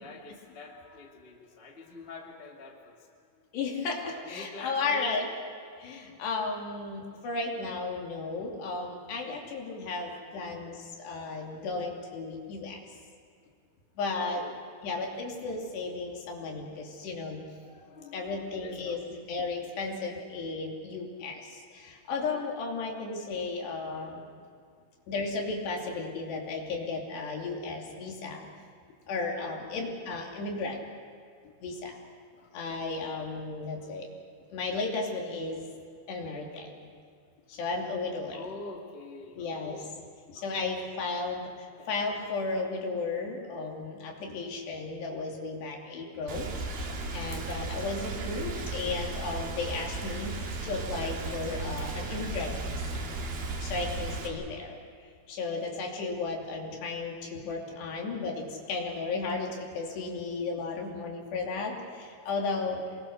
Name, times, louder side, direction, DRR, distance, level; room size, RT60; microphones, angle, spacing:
voice 1, 0.0-3.4 4.0-5.3 5.7-5.8 9.4-11.0 14.0-14.6 16.9-17.1 17.6-19.0 24.4-24.8 29.4-30.0 32.3-32.6 38.3-40.0 40.3-40.9 41.8-41.9 46.1-46.2 62.3-62.7, left 3 dB, 25° left, 0 dB, 1.4 m, -48 dB
voice 2, 3.5-5.2 5.8-12.8 14.0-14.4 14.8-17.4 18.1-24.2 25.1-28.4 29.1-30.8 31.6-32.0 32.5-34.1 34.5-35.7 36.1-36.9 37.5-38.4 39.4-39.8 40.3-46.5 47.1-53.1 53.6-54.8 55.3-62.8, left 3 dB, 65° left, 0 dB, 4.8 m, -34 dB
Rain, 46.3-54.3, right 3 dB, 55° right, 4.2 m, -35 dB
27.0 x 22.0 x 6.6 m, 2.2 s
omnidirectional pair, 5.4 m